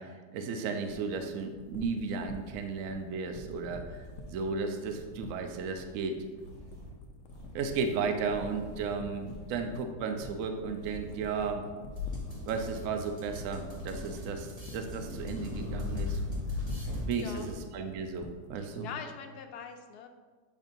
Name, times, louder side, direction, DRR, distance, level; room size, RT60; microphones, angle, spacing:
voice 1, 0.0-4.0 4.3-6.2 7.5-11.7 12.5-16.2 17.1-18.9, right 5 dB, 65° right, 5 dB, 0.9 m, -34 dB
sound 1, 0.9-18.6, left 3 dB, 60° left, 0.8 m, -47 dB
sound 2, 3.5-3.6 3.9-5.1 5.5-5.9 6.4-6.9 7.3-8.9 9.2-9.7 10.8-11.5 11.9-12.8 13.2-14.4 14.8-17.1, left 2 dB, 90° right, 2.7 m, -39 dB
sound 3, 12.0-17.8, left 1 dB, 25° right, 1.2 m, -47 dB
voice 2, 17.1-17.5 18.6-20.1, left 6 dB, 80° left, 6 dB, 1.2 m, -43 dB
7.3 x 5.3 x 2.6 m, 1.4 s
omnidirectional pair, 1.7 m